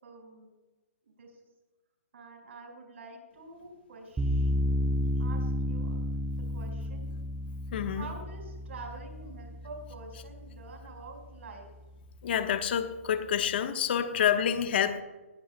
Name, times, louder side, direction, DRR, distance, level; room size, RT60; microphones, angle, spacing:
voice 1, 0.0-0.5 1.0-1.4 2.1-4.5 5.2-7.1 7.8-11.7, right 3 dB, 60° right, 2 dB, 5.2 m, -47 dB
sound 1, 4.2-11.3, left 1 dB, 5° right, 0.5 m, -32 dB
voice 2, 7.7-8.1 12.2-15.0, left 8 dB, 45° left, 7 dB, 1.3 m, -28 dB
19.5 x 16.5 x 2.3 m, 1.1 s
hypercardioid pair, 150°, 8 cm